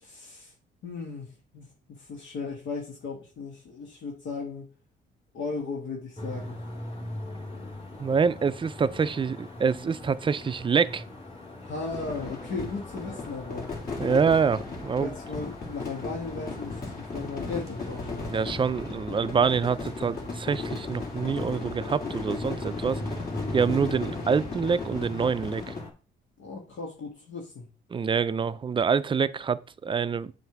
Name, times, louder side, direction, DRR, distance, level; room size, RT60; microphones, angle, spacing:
voice 1, 0.0-0.5 0.8-1.6 2.1-4.6 5.3-6.6 11.6-13.7 15.0-18.3 26.4-27.7, left 4 dB, 70° left, 1.4 m, -36 dB
sound 1, 6.2-25.9, left 1 dB, 30° left, 1.9 m, -41 dB
voice 2, 8.0-11.0 14.0-15.1 18.2-23.0 23.5-25.7 27.9-30.3, right 6 dB, 25° right, 0.4 m, -26 dB
sound 2, 11.9-25.8, left 3 dB, 45° left, 2.5 m, -36 dB
7.9 x 2.6 x 5.8 m
cardioid pair, 90°, 20 cm